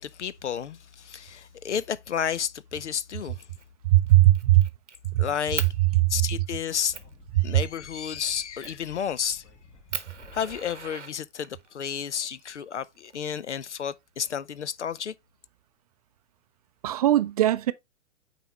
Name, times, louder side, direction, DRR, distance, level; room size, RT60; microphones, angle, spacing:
voice 1, 0.0-3.4 5.2-5.7 6.1-7.0 7.4-9.4 10.3-15.1, left 8 dB, 75° left, 0.6 m, -31 dB
Fire, 3.4-3.7 4.1-5.0 5.5-5.7 6.3-6.4 6.9-7.1 8.6-8.9 9.4-9.5 9.9-11.7 12.7-13.7, right 6 dB, 80° right, 0.9 m, -38 dB
voice 2, 3.8-4.7 5.1-5.2 7.4-7.5 16.8-17.7, right 15 dB, 35° right, 0.4 m, -19 dB
Speech / Wind, 6.4-10.9, left 2 dB, 30° left, 1.9 m, -53 dB
9.0 x 4.1 x 3.1 m
figure-of-eight pair, 105°, 35 cm